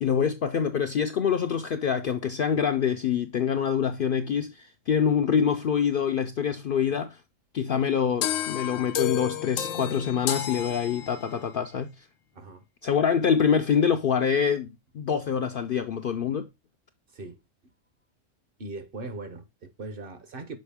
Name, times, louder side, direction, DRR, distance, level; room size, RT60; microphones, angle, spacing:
voice 1, 0.0-7.2 7.5-11.9 12.8-16.5, left 7 dB, 60° left, 0.6 m, -25 dB
sound 1, 8.2-11.5, left 10 dB, 90° left, 1.1 m, -31 dB
voice 2, 12.3-12.6 17.1-17.4 18.6-20.6, right 2 dB, 50° right, 1.0 m, -39 dB
6.4 x 4.8 x 3.5 m
omnidirectional pair, 1.3 m